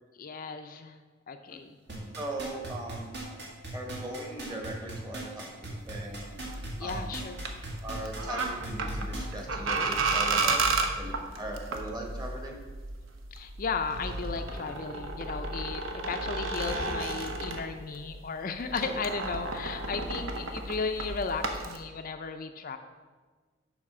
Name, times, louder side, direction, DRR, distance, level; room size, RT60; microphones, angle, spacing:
voice 1, 0.2-1.0 1.3-1.8 6.8-7.5 13.3-22.8, left 4 dB, 45° left, 6 dB, 0.5 m, -35 dB
sound 1, 1.9-9.4 9.9-10.0, right 2 dB, 60° right, 2.1 m, -39 dB
voice 2, 2.2-3.1 3.7-6.3 6.8-7.1 7.8-12.6, right 1 dB, 20° right, 1 dB, 1.3 m, -39 dB
sound 2, 5.8-18.2 18.4-21.8, right 3 dB, 85° right, 0.9 m, -33 dB
7.3 x 5.4 x 6.0 m, 1.4 s
head